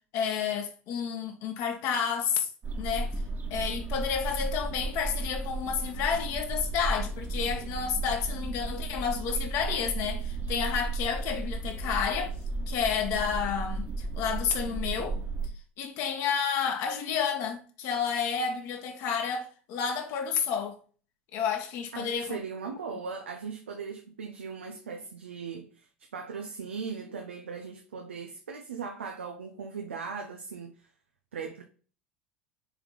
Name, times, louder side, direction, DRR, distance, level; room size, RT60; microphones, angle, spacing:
voice 1, 0.1-2.5 2.8-3.1 3.5-12.3 12.7-15.2 15.8-20.8 21.3-22.4, left 7 dB, 50° left, 1.5 m, -30 dB
sound 1, 2.6-15.5, right 3 dB, 30° right, 1.5 m, -34 dB
voice 2, 21.9-30.9 31.3-31.6, right 5 dB, 75° right, 0.8 m, -39 dB
6.7 x 4.5 x 3.8 m
figure-of-eight pair, 75°, 7 cm